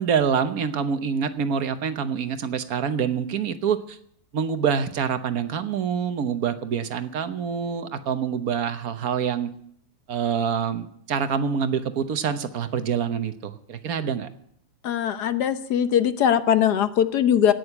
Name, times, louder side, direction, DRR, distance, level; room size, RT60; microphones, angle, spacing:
voice 1, 0.0-4.0 4.3-9.5 10.1-14.3, right 7 dB, 65° right, 10 dB, 1.5 m, -26 dB
voice 2, 14.8-17.5, left 9 dB, 80° left, 11 dB, 1.5 m, -21 dB
17.0 x 6.5 x 9.7 m, 0.68 s
omnidirectional pair, 1.7 m